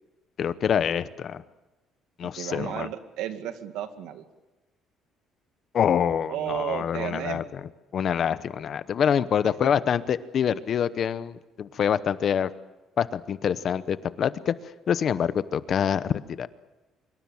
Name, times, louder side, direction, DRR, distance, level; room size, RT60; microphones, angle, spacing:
voice 1, 0.4-1.4 2.2-2.9 5.7-7.6 7.9-12.5 13.0-14.5 14.9-16.5, left 8 dB, 40° left, 15 dB, 0.8 m, -26 dB
voice 2, 2.4-4.3 6.3-7.4 9.4-9.7, right 11 dB, 90° right, 8 dB, 2.1 m, -33 dB
24.5 x 24.0 x 7.3 m, 1.1 s
cardioid pair, 170°, 0 cm